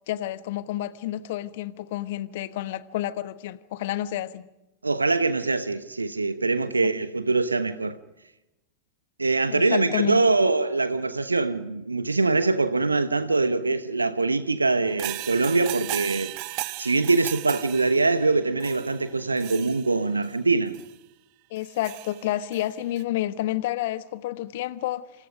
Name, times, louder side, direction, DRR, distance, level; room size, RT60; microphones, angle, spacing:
voice 1, 0.1-4.5 6.6-6.9 9.5-10.3 21.5-25.3, left 14 dB, 55° left, 1.2 m, -30 dB
voice 2, 4.8-8.0 9.2-16.3 16.8-20.7, right 3 dB, 80° right, 1.1 m, -23 dB
sound 1, 14.9-20.3 20.7-20.9 21.6-22.7 23.0-23.1, right 21 dB, 45° right, 1.1 m, -36 dB
28.0 x 28.0 x 5.2 m
figure-of-eight pair, 90°, 0 cm